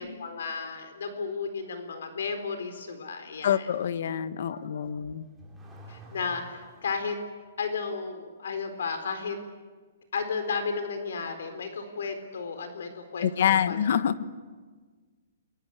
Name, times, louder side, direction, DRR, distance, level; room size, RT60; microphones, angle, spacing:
voice 1, 0.0-3.7 4.5-5.0 5.9-7.2 7.6-9.4 10.1-13.8, left 5 dB, 75° left, 7 dB, 4.1 m, -34 dB
voice 2, 3.4-5.3 13.2-14.2, left 9 dB, 55° left, 13 dB, 1.3 m, -26 dB
Car / Accelerating revving vroom, 4.8-7.1, right 1 dB, 5° right, 3.6 m, -49 dB
29.5 x 23.0 x 8.3 m, 1.4 s
hypercardioid pair, 170°, 0 cm